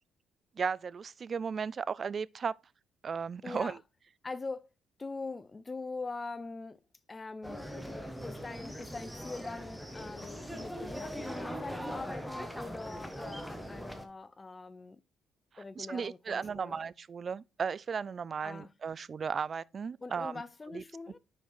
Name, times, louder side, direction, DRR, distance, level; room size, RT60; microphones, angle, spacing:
voice 1, 0.6-2.5 3.0-3.8 15.5-20.3 20.7-20.8, right 6 dB, 45° right, 0.3 m, -35 dB
voice 2, 3.4-3.8 4.2-4.7 5.0-6.8 7.1-7.7 8.2-15.0 15.6-16.8 18.4-18.7 20.0-21.2, left 3 dB, 25° left, 0.5 m, -42 dB
sound 1, 7.4-14.1, equal, ahead, 1.0 m, -41 dB
5.7 x 4.7 x 4.4 m
cardioid pair, 85°, 0 cm